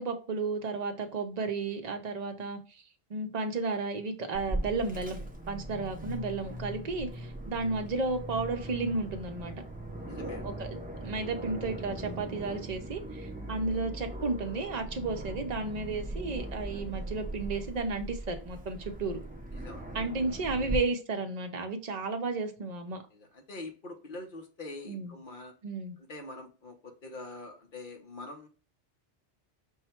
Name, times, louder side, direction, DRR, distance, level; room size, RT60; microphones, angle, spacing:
voice 1, 0.0-2.8 3.1-5.2 5.5-9.5 10.4-19.2 19.9-23.0 24.9-25.2 25.6-26.0, right 3 dB, 45° right, 0.8 m, -33 dB
Aircraft, 4.3-20.8, right 1 dB, 10° right, 0.5 m, -39 dB
voice 2, 10.1-10.5 19.5-19.9 23.1-25.5 26.0-28.5, left 2 dB, 55° left, 1.0 m, -44 dB
5.5 x 2.2 x 4.3 m
omnidirectional pair, 1.0 m